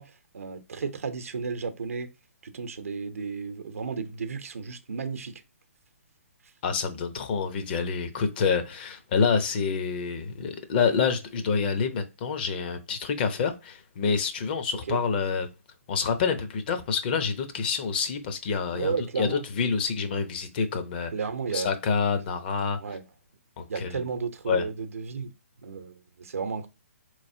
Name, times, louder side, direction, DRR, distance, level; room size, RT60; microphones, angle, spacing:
voice 1, 0.0-2.1 2.4-5.4 14.9-15.0 18.7-19.4 21.1-21.7 22.8-23.0 23.7-25.3 25.6-26.7, right 5 dB, 75° right, 0.7 m, -33 dB
voice 2, 6.6-15.5 15.9-21.1 21.5-22.8 23.6-24.0 24.5-24.6, left 5 dB, 40° left, 0.7 m, -27 dB
4.1 x 3.1 x 2.6 m
hypercardioid pair, 140°, 8 cm